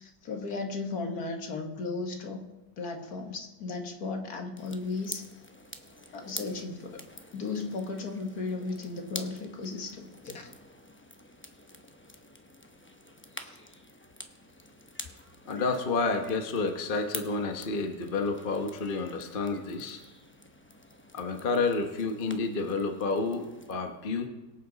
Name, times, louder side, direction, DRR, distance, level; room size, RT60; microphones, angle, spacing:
voice 1, 0.0-2.5 2.8-5.3 6.1-7.0 7.3-10.5 13.4-13.5, left 3 dB, 60° left, 4 dB, 1.9 m, -35 dB
sound 1, 4.6-23.7, left 1 dB, 15° left, 0.4 m, -47 dB
voice 2, 15.4-20.0 21.1-24.3, left 3 dB, 35° left, 5 dB, 1.1 m, -30 dB
23.0 x 8.5 x 4.0 m, 1.1 s
omnidirectional pair, 1.9 m